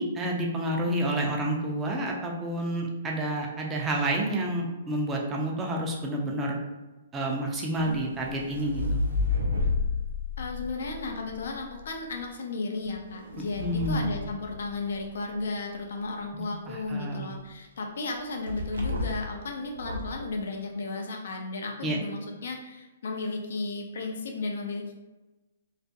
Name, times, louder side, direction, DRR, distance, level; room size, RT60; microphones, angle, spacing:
voice 1, 0.0-6.6 7.1-9.0 13.6-14.1 16.3-17.4 21.8-22.0, right 1 dB, 15° right, -1 dB, 0.5 m, -29 dB
sound 1, 7.8-11.9 12.8-15.2 18.5-19.4 19.7-20.2, left 3 dB, 90° right, 0.5 m, -31 dB
voice 2, 10.4-24.9, left 3 dB, 70° left, 2 dB, 0.5 m, -34 dB
2.3 x 2.1 x 2.7 m, 1.1 s
hypercardioid pair, 135°, 0 cm